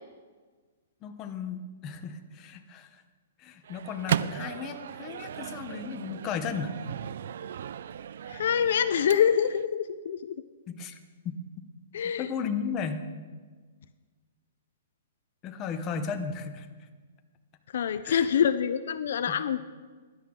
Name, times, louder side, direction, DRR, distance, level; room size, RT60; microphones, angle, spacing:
voice 1, 1.0-3.0 3.4-6.7 10.7-11.0 11.2-11.3 12.2-13.1 15.4-16.9 18.0-18.3, left 6 dB, 20° left, 6 dB, 0.7 m, -35 dB
Microwave oven, 3.6-9.6, right 9 dB, 55° right, 0.3 m, -36 dB
voice 2, 8.3-10.4 11.9-12.3 17.7-19.6, left 8 dB, 60° left, 12 dB, 0.5 m, -25 dB
16.5 x 11.0 x 3.7 m, 1.4 s
hypercardioid pair, 175°, 0 cm